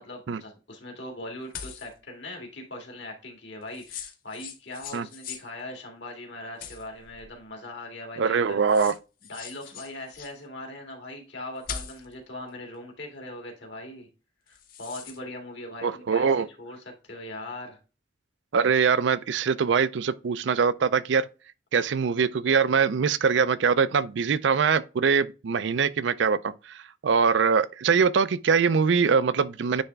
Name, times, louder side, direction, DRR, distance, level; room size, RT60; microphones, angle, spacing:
voice 1, 0.0-8.6 9.3-14.1 14.5-17.8, left 1 dB, 65° left, 2.1 m, -40 dB
sound 1, 1.5-1.9 3.7-5.5 6.6-7.3 8.3-8.4 8.7-10.4 11.6-12.1 14.5-15.2, left 7 dB, 45° left, 0.9 m, -40 dB
voice 2, 8.2-8.9 15.8-16.5 18.5-21.3 21.7-29.8, right 6 dB, 70° right, 0.4 m, -23 dB
9.5 x 3.4 x 3.4 m
head